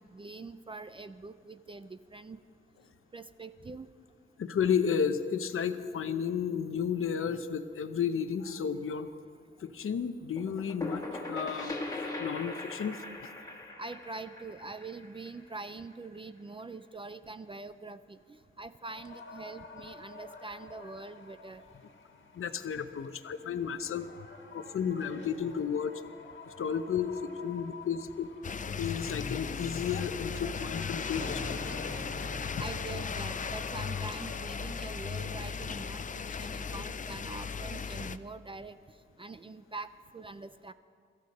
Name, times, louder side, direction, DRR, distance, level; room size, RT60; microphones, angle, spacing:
voice 1, 0.0-2.4 3.1-3.9 13.8-18.2 18.6-21.6 32.6-38.8 39.2-39.9 40.1-40.7, right 3 dB, 25° right, 11 dB, 0.4 m, -44 dB
voice 2, 4.4-9.1 9.6-13.0 22.3-24.1 24.5-26.0 26.5-28.3 28.8-31.6, left 7 dB, 80° left, 10 dB, 0.8 m, -32 dB
sound 1, 10.4-15.9, left 2 dB, 15° left, 1.6 m, -40 dB
sound 2, 18.8-35.4, left 3 dB, 60° left, 1.6 m, -47 dB
sound 3, 28.4-38.2, left 6 dB, 40° left, 0.4 m, -37 dB
23.0 x 14.0 x 4.2 m, 2.1 s
wide cardioid pair, 175°, 21 cm